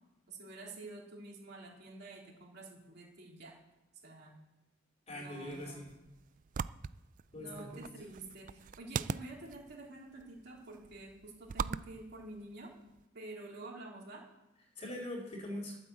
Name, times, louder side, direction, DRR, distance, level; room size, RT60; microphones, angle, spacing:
voice 1, 0.3-3.6 4.0-4.3 5.1-5.8 7.4-12.7 13.1-14.2, right 2 dB, 55° right, -3 dB, 3.9 m, -49 dB
voice 2, 5.1-5.9 7.3-7.9 14.8-15.8, left 1 dB, 35° left, -1 dB, 4.4 m, -42 dB
sound 1, 5.4-13.0, right 6 dB, 40° right, 0.3 m, -43 dB
12.5 x 8.0 x 8.0 m, 1.0 s
head